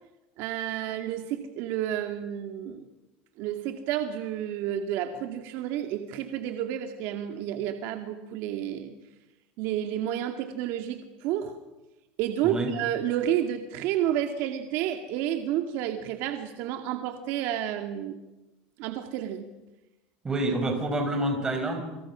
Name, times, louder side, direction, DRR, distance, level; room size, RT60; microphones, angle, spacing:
voice 1, 0.4-2.9 3.4-8.9 9.6-11.6 12.2-18.2 18.8-19.5, right 11 dB, 60° right, 5 dB, 2.3 m, -30 dB
voice 2, 20.2-21.8, right 2 dB, 15° right, 4 dB, 6.1 m, -27 dB
28.5 x 26.0 x 6.3 m, 1.0 s
cardioid pair, 145°, 4 cm